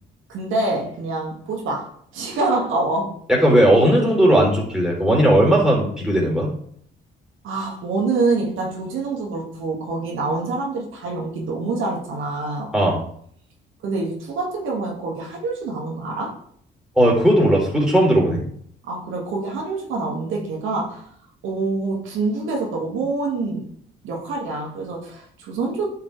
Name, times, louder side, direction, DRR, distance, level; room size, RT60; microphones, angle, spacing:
voice 1, 0.3-3.1 7.4-12.7 13.8-16.3 18.8-21.1 21.4-23.7 24.0-25.9, right 3 dB, 85° right, -2 dB, 2.2 m, -26 dB
voice 2, 3.4-6.5 12.7-13.0 17.0-18.4, right 1 dB, 5° right, -3 dB, 3.7 m, -17 dB
9.9 x 5.8 x 3.4 m, 0.64 s
cardioid pair, 90°, 20 cm